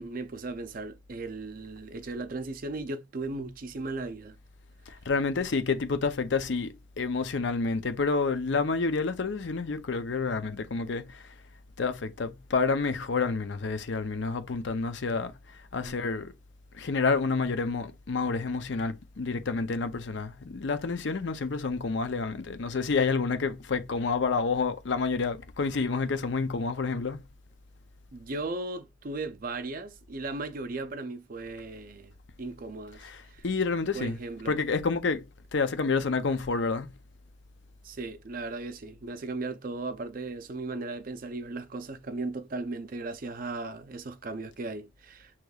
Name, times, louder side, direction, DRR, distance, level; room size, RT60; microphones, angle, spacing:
voice 1, 0.0-4.4 15.8-15.9 28.1-33.4 33.9-34.6 37.8-45.3, right 3 dB, 45° right, 0.5 m, -37 dB
voice 2, 4.9-11.3 11.8-16.3 16.7-27.2 33.0-34.2 34.5-35.3 35.5-36.9, left 4 dB, 60° left, 0.5 m, -29 dB
6.3 x 3.0 x 2.3 m
head